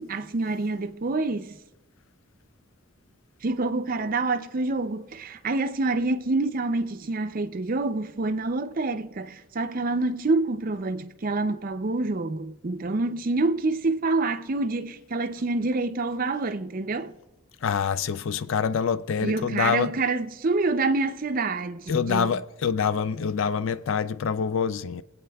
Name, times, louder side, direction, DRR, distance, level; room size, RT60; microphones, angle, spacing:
voice 1, 0.0-1.6 3.4-17.1 19.2-22.3, right 3 dB, 40° right, 0.5 m, -27 dB
voice 2, 17.6-19.9 21.9-25.0, left 6 dB, 65° left, 0.4 m, -26 dB
24.5 x 8.6 x 2.3 m
head